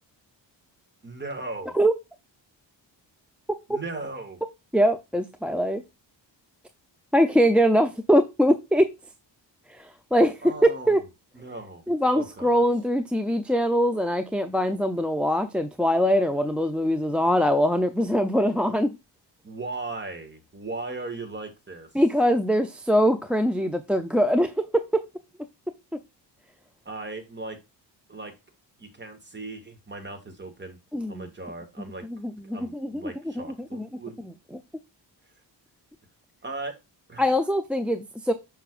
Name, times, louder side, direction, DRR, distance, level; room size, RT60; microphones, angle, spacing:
voice 1, 1.0-1.8 3.7-4.4 10.4-11.0 11.3-11.9 12.1-12.6 19.4-21.9 26.9-27.6 28.1-28.3 28.8-30.8 31.1-32.0 32.4-34.2 36.4-36.8 37.1-37.3, right 3 dB, 25° right, 2.0 m, -37 dB
voice 2, 4.7-5.8 7.1-8.9 9.7-11.0 11.9-19.0 21.9-24.8 30.9-31.3 32.2-33.0 33.4-33.5 33.7-33.9 37.2-38.3, equal, 5° right, 0.6 m, -22 dB
6.5 x 5.8 x 2.5 m
cardioid pair, 95°, 44 cm